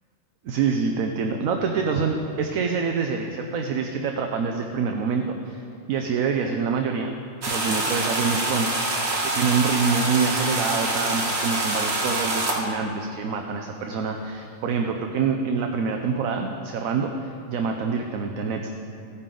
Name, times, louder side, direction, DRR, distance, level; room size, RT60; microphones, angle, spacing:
voice 1, 0.4-7.1 7.5-8.8 9.3-18.7, right 5 dB, 75° right, 4 dB, 1.1 m, -26 dB
sound 1, 7.4-12.6, right 2 dB, 50° right, 1.8 m, -25 dB
16.0 x 9.9 x 3.8 m, 2.6 s
omnidirectional pair, 1.5 m